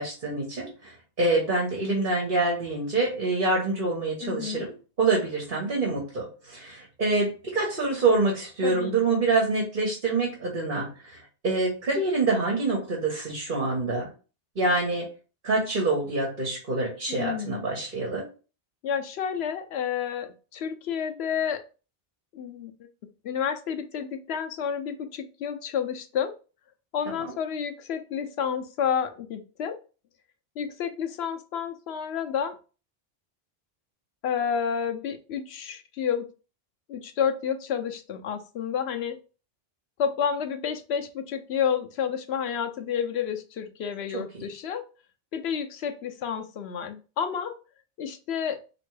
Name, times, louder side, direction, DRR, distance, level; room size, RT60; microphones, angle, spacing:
voice 1, 0.0-14.1 14.5-15.1 15.4-18.3 44.1-44.4, right 3 dB, 55° right, -1 dB, 1.3 m, -26 dB
voice 2, 4.2-4.6 8.6-9.2 17.1-17.6 18.8-21.6 22.3-22.7 23.2-26.3 26.9-29.8 30.6-32.6 34.2-36.3 36.9-39.2 40.0-44.8 45.3-47.6 48.0-48.6, left 7 dB, 90° left, 7 dB, 0.9 m, -30 dB
4.2 x 3.0 x 3.2 m, 0.34 s
omnidirectional pair, 1.1 m